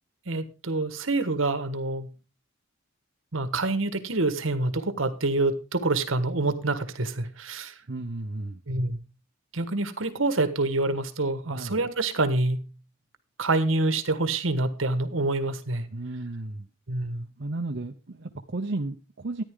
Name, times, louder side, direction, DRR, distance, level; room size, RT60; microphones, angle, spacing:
voice 1, 0.3-2.1 3.3-7.7 8.7-9.0 9.5-12.6 13.4-15.9 16.9-17.2, right 2 dB, 75° right, 1.4 m, -26 dB
voice 2, 7.9-8.6 11.5-11.8 15.9-16.7 17.4-19.4, right 2 dB, 55° right, 0.8 m, -33 dB
13.5 x 10.0 x 3.7 m
head